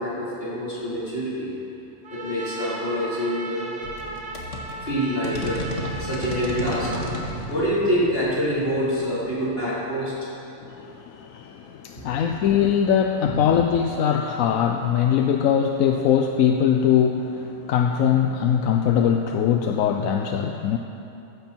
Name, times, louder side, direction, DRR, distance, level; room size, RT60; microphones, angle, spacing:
voice 1, 0.0-1.5 2.1-3.7 4.8-5.7 6.0-7.0 7.5-10.3, equal, 45° left, -9 dB, 4.3 m, -26 dB
Trumpet, 2.0-7.3, right 3 dB, 45° right, 1.6 m, -36 dB
sound 1, 3.8-10.3, left 1 dB, 60° left, 2.0 m, -34 dB
voice 2, 10.6-20.8, left 8 dB, 80° left, 4 dB, 1.1 m, -21 dB
15.0 x 15.0 x 4.5 m, 2.8 s
omnidirectional pair, 1.4 m